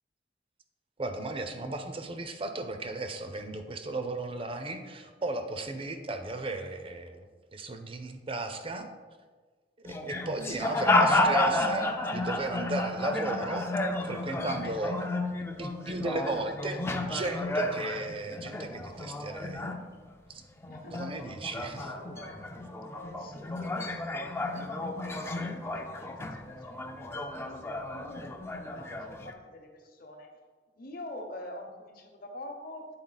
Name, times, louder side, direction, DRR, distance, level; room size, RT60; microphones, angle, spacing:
voice 1, 1.0-8.9 9.9-13.7 14.0-15.0 15.6-19.7 20.3-20.4 20.9-21.9, right 2 dB, 30° right, 7 dB, 0.6 m, -35 dB
Pub Ambience, 9.8-20.3 20.6-29.3, left 2 dB, 15° left, 0.4 m, -32 dB
voice 2, 20.6-21.2 21.8-30.3 30.7-33.0, left 1 dB, 55° left, 3 dB, 1.0 m, -46 dB
8.7 x 4.2 x 4.0 m, 1.4 s
head